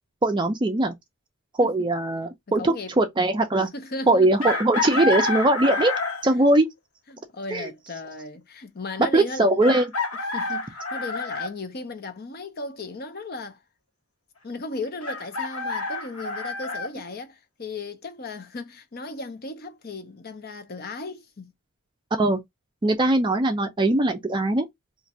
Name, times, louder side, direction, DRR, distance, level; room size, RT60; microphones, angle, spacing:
voice 1, 0.2-0.9 1.6-3.7 4.1-5.9 6.2-6.7 7.5-7.7 9.1-9.8 22.2-22.4 22.8-24.7, right 2 dB, 20° right, 0.4 m, -21 dB
voice 2, 2.6-2.9 3.7-4.5 4.9-5.0 6.2-6.5 7.1-9.6 10.3-13.6 14.4-21.5, left 3 dB, 45° left, 0.6 m, -36 dB
Chicken rooster, 4.4-6.3 8.0-8.1 9.6-11.5 15.0-16.9, left 3 dB, 80° left, 1.2 m, -28 dB
2.5 x 2.4 x 4.1 m
head